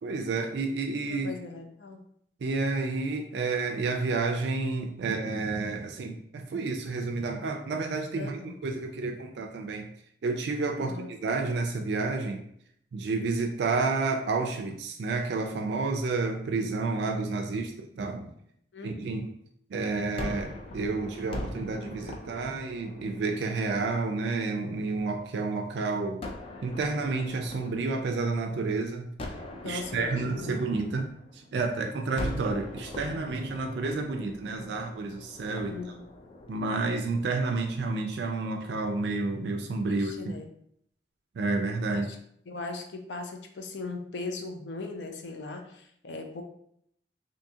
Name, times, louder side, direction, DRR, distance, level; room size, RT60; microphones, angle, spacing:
voice 1, 0.0-1.4 2.4-9.9 10.2-12.4 12.9-18.3 18.8-19.3 19.7-26.3 26.6-29.1 29.6-35.8 36.5-40.3 41.4-42.1, right 3 dB, 70° right, 4 dB, 0.4 m, -30 dB
voice 2, 1.1-2.0 8.2-8.6 10.9-11.1 18.7-19.1 29.6-30.6 35.7-36.0 39.9-40.5 41.9-42.1 42.5-46.4, left 3 dB, 85° left, 5 dB, 0.5 m, -39 dB
Gunshot gunfire, 20.2-25.3 26.2-28.6 29.2-31.7 32.2-37.4, left 1 dB, 30° left, 0.4 m, -42 dB
3.5 x 2.8 x 2.7 m, 0.69 s
head